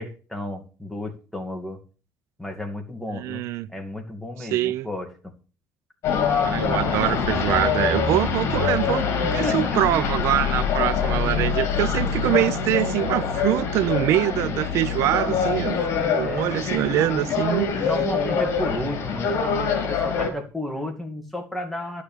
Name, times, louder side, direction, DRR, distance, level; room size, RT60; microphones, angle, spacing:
voice 1, 0.0-1.8 2.4-5.1 6.6-6.8 9.2-9.8 16.2-16.7 17.8-22.0, left 1 dB, 5° left, 2.3 m, -32 dB
voice 2, 3.1-3.7 4.4-4.9 6.4-9.0 9.3-15.8 16.1-17.7, right 14 dB, 75° right, 0.5 m, -24 dB
sound 1, 6.0-20.3, left 6 dB, 65° left, 3.6 m, -24 dB
11.5 x 6.7 x 6.8 m
cardioid pair, 150°, 5 cm